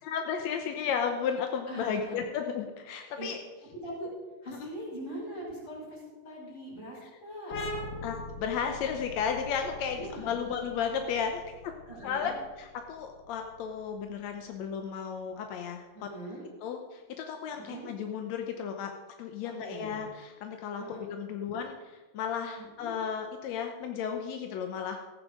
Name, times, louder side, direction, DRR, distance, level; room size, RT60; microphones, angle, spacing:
voice 1, 0.0-3.4 4.5-4.7 7.0-7.1 8.0-11.7 12.0-12.3 12.6-16.1 16.6-25.0, left 7 dB, 75° left, 5 dB, 1.7 m, -34 dB
voice 2, 1.7-2.1 3.2-3.3 3.8-4.1 4.4-7.6 9.9-10.5 11.9-12.3 15.9-16.4 17.6-17.9 19.6-20.1 20.8-21.0 22.6-22.9, right 1 dB, 30° left, -5 dB, 5.9 m, -42 dB
sound 1, 7.5-14.8, left 2 dB, 50° left, 1.4 m, -42 dB
14.5 x 10.0 x 5.1 m, 1.3 s
omnidirectional pair, 4.1 m